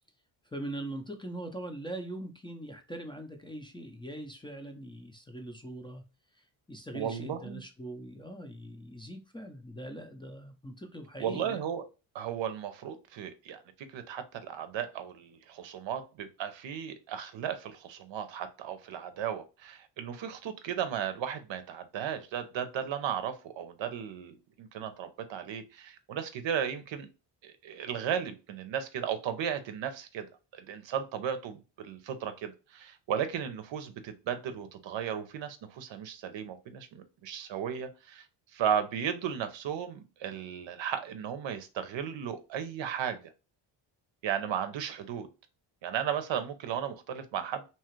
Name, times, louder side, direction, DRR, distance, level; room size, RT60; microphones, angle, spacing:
voice 1, 0.4-6.0 6.3-11.6, right 1 dB, 10° left, 0.5 m, -42 dB
voice 2, 6.9-7.6 11.2-11.8 12.1-27.1 27.4-30.3 30.5-38.3 38.5-43.2 44.2-45.3 45.8-47.7, right 8 dB, 65° right, 0.7 m, -35 dB
2.9 x 2.4 x 3.0 m
cardioid pair, 85°, 48 cm